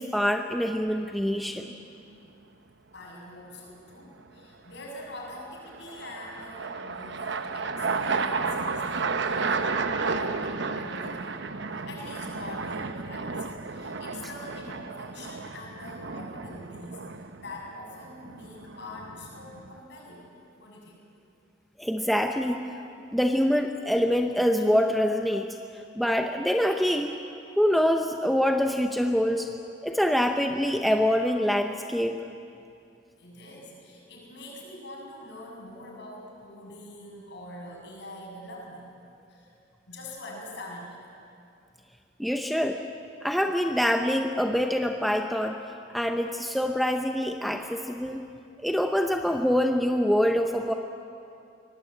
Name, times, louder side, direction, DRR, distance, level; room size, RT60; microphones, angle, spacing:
voice 1, 0.0-1.7 21.8-22.6 23.1-27.2 27.6-29.5 29.8-32.2 42.2-42.8 43.2-45.6 45.9-48.2 48.6-50.7, equal, ahead, 3 dB, 0.7 m, -25 dB
sound 1, 0.9-1.4 5.2-19.8, right 4 dB, 60° right, 1.0 m, -33 dB
voice 2, 2.9-9.7 10.0-10.5 10.7-11.3 11.7-20.3 20.6-21.0 33.2-38.9 39.3-39.5 39.9-41.1, left 1 dB, 60° left, -2 dB, 7.1 m, -44 dB
24.0 x 18.5 x 8.6 m, 2.5 s
head